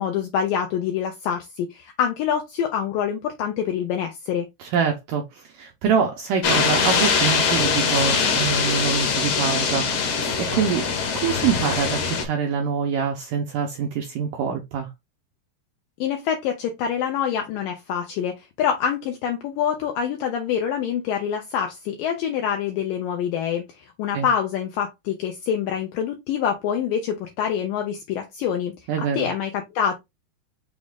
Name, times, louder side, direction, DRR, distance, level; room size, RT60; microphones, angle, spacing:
voice 1, 0.0-4.5 16.0-28.7 29.1-30.0, left 8 dB, 80° left, 2.0 m, -26 dB
voice 2, 4.6-10.9 11.2-14.9 24.1-24.3 28.9-29.3, right 7 dB, 85° right, 1.9 m, -25 dB
sound 1, 6.4-12.3, left 5 dB, 65° left, 2.0 m, -22 dB
6.2 x 2.4 x 3.5 m
omnidirectional pair, 4.6 m